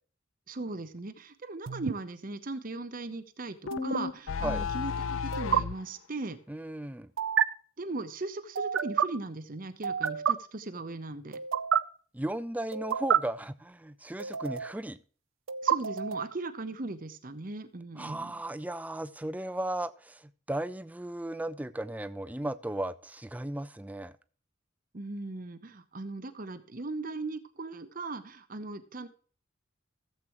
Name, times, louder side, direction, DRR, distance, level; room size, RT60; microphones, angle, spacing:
voice 1, 0.5-6.4 7.8-11.4 15.6-18.3 24.9-29.1, right 2 dB, 45° right, 0.8 m, -38 dB
sound 1, 1.7-1.9 3.7-4.0 5.3-5.6 7.2-7.4 8.5-9.1 9.8-10.3 11.3-11.8 12.7-13.2 14.2-14.8 15.5-16.3, right 8 dB, 75° right, 0.5 m, -28 dB
sound 2, 3.7-5.8, left 5 dB, 80° left, 0.5 m, -33 dB
voice 2, 6.5-7.1 12.1-15.0 18.0-24.1, right 1 dB, 10° right, 0.3 m, -36 dB
15.5 x 7.5 x 3.0 m
head